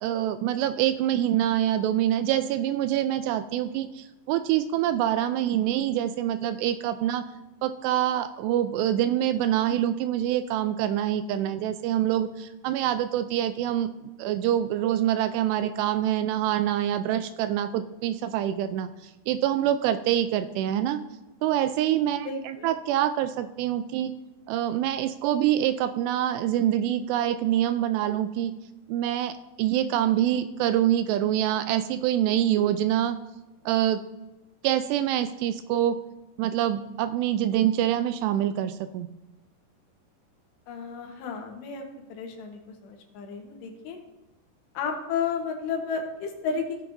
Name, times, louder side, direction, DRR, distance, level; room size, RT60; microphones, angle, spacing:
voice 1, 0.0-7.2 7.6-13.9 14.2-18.9 19.3-21.0 21.4-24.1 24.5-28.5 28.9-33.2 33.7-34.0 34.6-36.0 36.4-39.1, right 11 dB, 85° right, 10 dB, 2.6 m, -25 dB
voice 2, 22.2-22.7 40.7-41.8 42.1-44.0 44.7-46.8, left 5 dB, 75° left, 2 dB, 3.4 m, -32 dB
16.0 x 7.7 x 2.6 m, 1.0 s
omnidirectional pair, 5.1 m